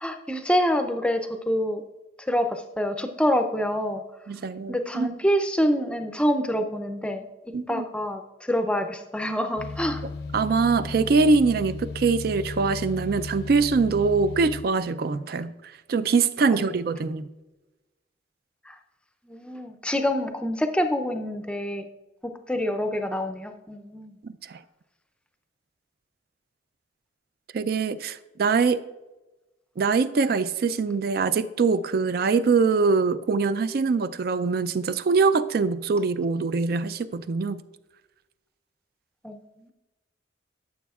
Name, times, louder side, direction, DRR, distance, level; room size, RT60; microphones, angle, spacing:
voice 1, 0.0-1.8 2.3-4.0 4.7-7.2 7.7-8.2 8.5-10.0 16.5-16.6 19.3-21.8 22.2-24.1 39.2-39.4, equal, 5° left, 0.5 m, -26 dB
voice 2, 4.3-5.2 7.5-7.8 10.3-15.5 15.9-17.2 24.2-24.6 27.5-28.8 29.8-37.6, right 4 dB, 50° right, 0.4 m, -23 dB
sound 1, 9.6-14.6, left 3 dB, 55° left, 0.5 m, -35 dB
13.5 x 6.9 x 2.4 m
head